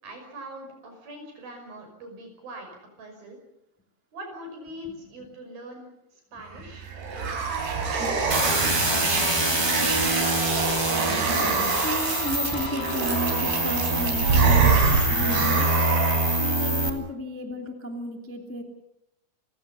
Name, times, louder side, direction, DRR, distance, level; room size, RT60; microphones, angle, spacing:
voice 1, 0.0-2.7 3.0-3.4 4.1-6.8, right 1 dB, 65° right, 4 dB, 7.6 m, -42 dB
voice 2, 6.3-6.7 7.1-7.5 9.2-9.5 11.8-15.7 16.4-18.6, equal, 5° left, 4 dB, 1.6 m, -33 dB
sound 1, 6.5-16.5, right 5 dB, 90° right, 5.8 m, -26 dB
sound 2, 8.3-16.9, right 1 dB, 25° right, 0.5 m, -25 dB
sound 3, 8.6-13.6, left 7 dB, 75° left, 3.8 m, -39 dB
29.5 x 16.5 x 7.0 m, 0.83 s
omnidirectional pair, 4.6 m